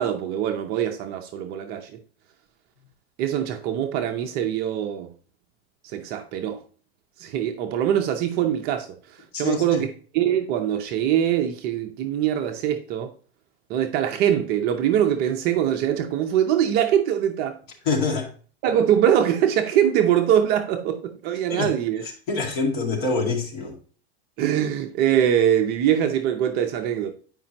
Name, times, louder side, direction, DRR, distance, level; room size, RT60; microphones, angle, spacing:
voice 1, 0.0-2.0 3.2-5.1 5.8-6.6 7.2-9.9 10.1-13.1 13.7-17.6 18.6-22.0 24.4-27.1, right 10 dB, 30° right, 0.6 m, -23 dB
voice 2, 9.3-9.8 17.9-18.3 21.5-21.7 22.0-23.8, left 4 dB, 45° left, 2.2 m, -26 dB
9.1 x 5.2 x 2.9 m
supercardioid pair, 150°, 32 cm